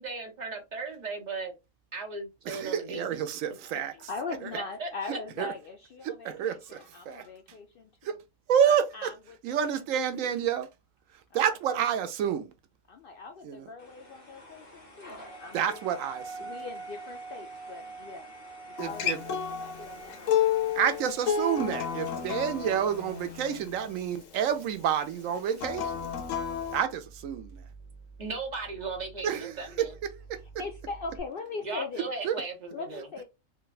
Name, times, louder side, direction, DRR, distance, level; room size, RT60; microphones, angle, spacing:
voice 1, 0.0-1.5 1.9-3.1 4.8-4.9 28.2-29.9 31.6-33.1, right 3 dB, 35° right, 1.0 m, -36 dB
voice 2, 2.5-3.9 5.4-5.5 6.0-6.8 7.1-7.3 8.0-8.2 8.5-9.1 9.4-10.7 11.3-12.5 13.4-13.6 15.5-16.5 18.8-19.2 20.7-25.9 26.7-27.6 29.2-30.4 32.2-32.4, right 8 dB, 85° right, 1.0 m, -29 dB
voice 3, 3.6-7.9 8.6-9.4 9.6-9.8 10.2-10.3 11.3-11.8 12.9-15.8 16.4-18.3 18.7-20.5 30.3-32.1 32.7-33.2, left 4 dB, 65° left, 0.6 m, -41 dB
sound 1, 13.8-23.6, right 2 dB, 45° left, 1.3 m, -45 dB
Acoustic guitar, 18.8-24.0 25.5-26.8, left 8 dB, 85° left, 1.0 m, -31 dB
sound 2, 25.6-31.2, right 4 dB, 5° left, 1.1 m, -50 dB
3.2 x 2.2 x 4.0 m
omnidirectional pair, 1.3 m